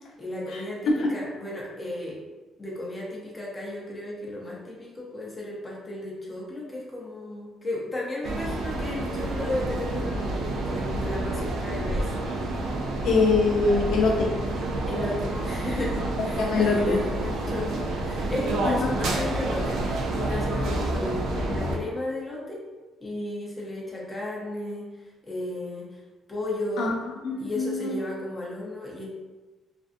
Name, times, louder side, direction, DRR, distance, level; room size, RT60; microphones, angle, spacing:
voice 1, 0.2-2.2 2.6-12.1 14.9-19.8 20.1-22.6 23.0-24.9 25.2-26.0 26.3-26.9 27.4-29.1, left 1 dB, 20° left, -4 dB, 0.6 m, -34 dB
sound 1, 8.2-21.8, right 2 dB, 80° right, 0.4 m, -29 dB
voice 2, 13.0-14.3 16.4-17.0 18.7-18.9 26.8-26.9 27.2-27.9, left 4 dB, 75° left, 0 dB, 0.4 m, -23 dB
2.5 x 2.3 x 2.5 m, 1.2 s
cardioid pair, 130°, 0 cm